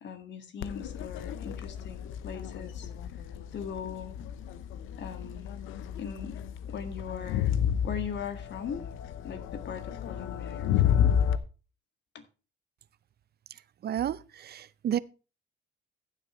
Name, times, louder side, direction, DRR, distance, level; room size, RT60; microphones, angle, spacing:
voice 1, 0.0-2.9 3.5-4.1 5.0-5.5 6.0-6.4 6.7-7.5 7.8-8.9 9.2-11.2 12.1-12.2, left 7 dB, 65° left, 1.9 m, -39 dB
Crowd, 0.6-11.4, left 9 dB, 90° left, 0.8 m, -31 dB
voice 2, 13.5-15.0, right 10 dB, 55° right, 0.6 m, -32 dB
14.5 x 8.0 x 3.1 m
cardioid pair, 90°, 20 cm